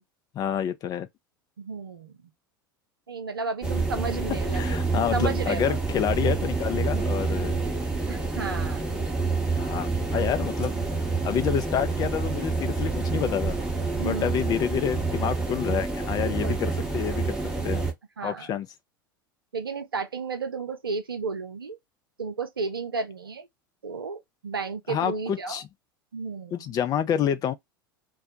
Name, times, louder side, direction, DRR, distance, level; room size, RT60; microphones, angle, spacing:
voice 1, 0.3-1.1 4.5-7.6 9.6-10.7 11.2-13.6 13.9-17.4 17.6-17.9 18.2-18.7 24.9-25.6 26.5-27.5, left 9 dB, 35° left, 0.5 m, -28 dB
voice 2, 1.6-2.2 3.1-4.8 5.1-5.8 8.1-8.8 14.0-14.4 16.4-16.6 18.2-18.5 19.5-21.8 22.2-23.5 23.8-25.6 26.1-26.7, right 4 dB, 80° right, 0.6 m, -33 dB
sound 1, 3.6-17.9, right 4 dB, 5° right, 0.9 m, -28 dB
2.3 x 2.2 x 2.7 m
figure-of-eight pair, 80°, 12 cm